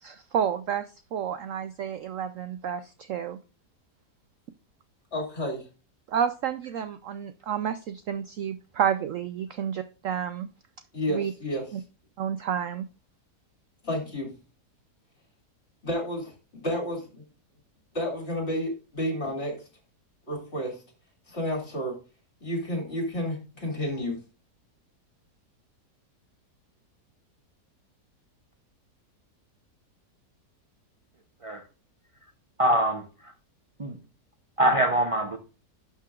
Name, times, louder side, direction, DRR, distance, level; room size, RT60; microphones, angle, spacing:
voice 1, 0.0-3.4 6.1-10.5 11.1-11.3 11.7-11.8 12.2-12.9, right 8 dB, 70° right, 0.8 m, -30 dB
voice 2, 5.1-5.7 10.9-11.6 13.8-14.3 15.8-17.2 17.9-19.6 20.3-20.8 21.3-21.9 22.4-24.2, equal, 40° left, 2.7 m, -31 dB
voice 3, 32.6-33.3 33.8-34.0 34.6-35.4, right 1 dB, 45° right, 0.4 m, -24 dB
11.5 x 5.7 x 2.4 m
omnidirectional pair, 1.8 m